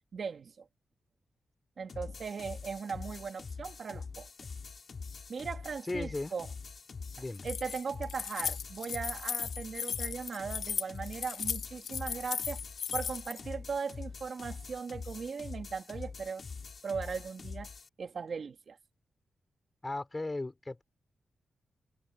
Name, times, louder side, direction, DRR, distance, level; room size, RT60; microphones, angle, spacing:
voice 1, 0.1-0.7 1.8-4.3 5.3-6.5 7.4-12.6 12.9-16.4 16.8-17.7 18.0-18.8, right 5 dB, 55° right, 2.0 m, -38 dB
sound 1, 1.9-17.9, left 5 dB, 45° left, 3.6 m, -44 dB
voice 2, 5.9-6.3 7.2-7.4 19.8-20.8, left 2 dB, 20° left, 5.2 m, -36 dB
Keys jangling, 7.3-13.4, left 7 dB, 75° left, 0.6 m, -36 dB
wide cardioid pair, 125°, 0 cm